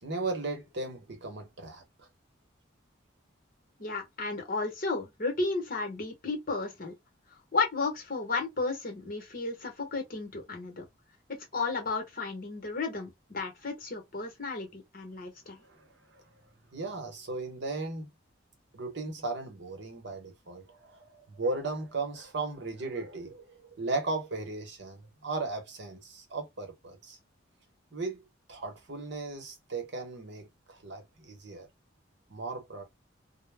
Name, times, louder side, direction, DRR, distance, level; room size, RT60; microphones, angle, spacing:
voice 1, 0.0-2.1 15.6-16.2 16.7-18.1 18.7-27.2 27.9-31.7 32.3-32.8, right 3 dB, 60° right, 0.8 m, -36 dB
voice 2, 3.8-7.0 7.5-10.8 11.5-15.6, left 3 dB, 45° left, 0.9 m, -33 dB
2.1 x 2.0 x 3.2 m
head